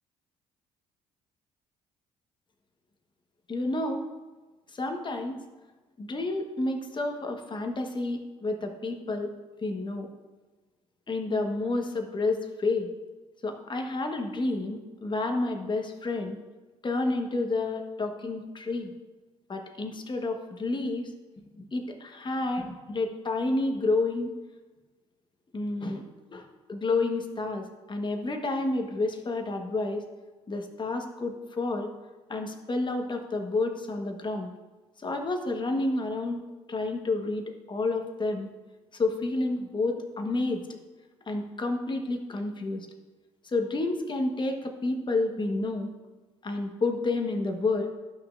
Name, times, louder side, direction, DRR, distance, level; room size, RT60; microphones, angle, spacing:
voice 1, 3.5-4.1 4.7-5.4 6.0-9.3 9.6-10.1 11.1-12.9 13.4-16.4 16.8-18.9 19.5-21.1 21.6-24.3 25.5-26.0 26.3-30.0 30.5-31.9 32.3-34.5 35.0-36.4 36.7-38.5 38.9-40.6 41.3-42.9 43.4-45.9 46.4-47.9, left 2 dB, 30° left, 4 dB, 1.3 m, -30 dB
12.0 x 5.9 x 2.5 m, 1.2 s
hypercardioid pair, 60°, 15 cm